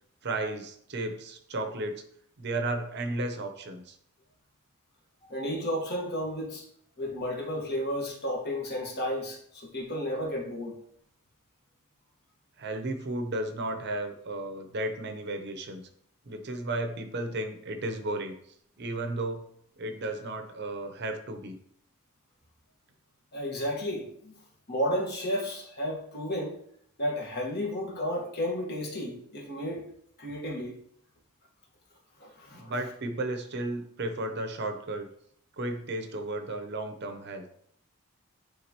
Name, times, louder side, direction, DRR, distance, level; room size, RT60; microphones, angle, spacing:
voice 1, 0.2-2.0 2.4-4.0 12.6-15.9 16.3-18.4 18.8-19.5 19.8-21.6 32.5-35.1 35.6-37.5, right 2 dB, 50° right, 6 dB, 0.7 m, -34 dB
voice 2, 5.3-6.6 7.0-10.8 23.3-24.4 24.7-26.5 27.0-29.8 30.2-30.8 32.2-32.7, equal, 50° left, -1 dB, 1.5 m, -32 dB
9.8 x 3.6 x 2.9 m, 0.67 s
head